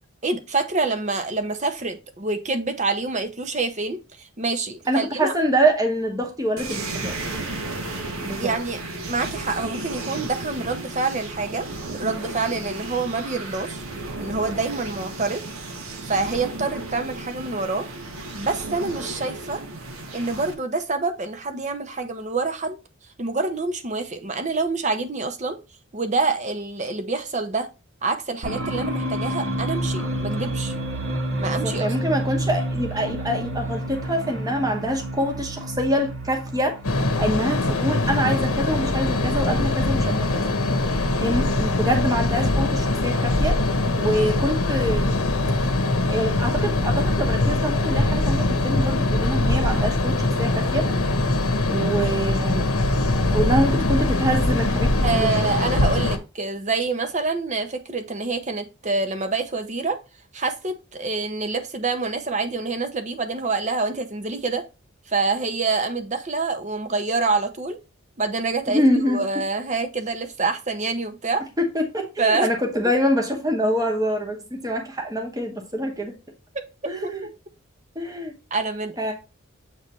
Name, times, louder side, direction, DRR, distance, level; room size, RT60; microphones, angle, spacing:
voice 1, 0.2-5.3 8.4-8.8 9.1-13.8 14.2-15.5 16.0-17.9 18.3-19.6 20.1-22.8 23.2-25.6 25.9-27.7 28.0-30.7 31.4-31.9 55.0-60.0 60.3-64.6 65.1-67.8 68.2-68.8 69.1-71.4 72.2-72.5 77.0-77.1 78.5-79.1, right 3 dB, 35° right, 7 dB, 0.7 m, -26 dB
voice 2, 4.9-7.2 8.2-8.5 31.4-36.7 37.2-40.5 41.2-43.6 44.0-45.1 46.1-50.8 51.7-52.8 53.3-55.4 68.7-69.2 71.6-76.1 76.9-77.2 77.9-78.3 79.0-79.1, equal, 15° right, 3 dB, 0.9 m, -25 dB
sound 1, 6.6-20.5, right 2 dB, 80° right, 1.1 m, -34 dB
sound 2, 28.4-38.0, right 1 dB, 60° right, 1.3 m, -29 dB
sound 3, 36.8-56.2, left 2 dB, 90° left, 0.9 m, -22 dB
7.5 x 3.2 x 4.1 m, 0.29 s
head